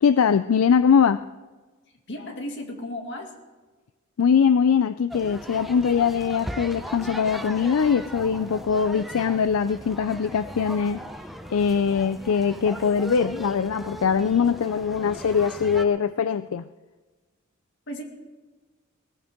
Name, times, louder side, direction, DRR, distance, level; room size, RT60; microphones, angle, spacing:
voice 1, 0.0-1.2 4.2-11.0 11.5-16.6, left 6 dB, 80° left, 13 dB, 0.4 m, -22 dB
voice 2, 2.1-3.3 17.9-18.0, left 1 dB, 60° left, 2 dB, 2.4 m, -34 dB
sound 1, 5.1-15.9, equal, ahead, 0.8 m, -38 dB
21.0 x 14.5 x 3.7 m, 1.3 s
head